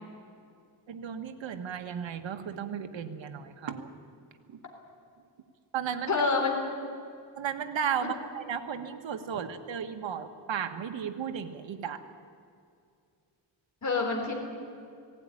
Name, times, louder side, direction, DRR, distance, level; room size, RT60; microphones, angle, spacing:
voice 1, 0.9-3.9 4.5-4.6 5.7-6.2 7.4-12.0, right 8 dB, 75° right, 7 dB, 1.5 m, -34 dB
voice 2, 6.1-6.6 13.8-14.3, left 4 dB, 40° left, 1 dB, 3.9 m, -26 dB
17.5 x 16.5 x 9.9 m, 2.3 s
cardioid pair, 100°, 45 cm